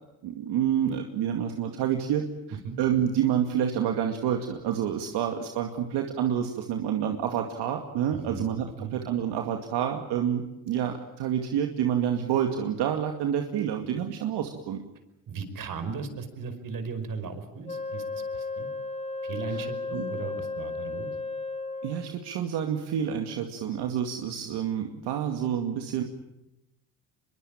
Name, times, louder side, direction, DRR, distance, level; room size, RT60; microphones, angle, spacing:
voice 1, 0.2-14.8 19.5-19.6 19.9-20.1 21.8-26.0, right 9 dB, 70° right, 4 dB, 2.4 m, -28 dB
voice 2, 8.1-8.5 8.8-8.9 15.3-18.7 19.2-21.1, right 4 dB, 50° right, 10 dB, 5.3 m, -37 dB
Wind instrument woodwind instrument, 17.7-22.3, left 3 dB, 15° left, 2.1 m, -34 dB
24.5 x 23.0 x 8.9 m, 0.92 s
cardioid pair, 95°, 41 cm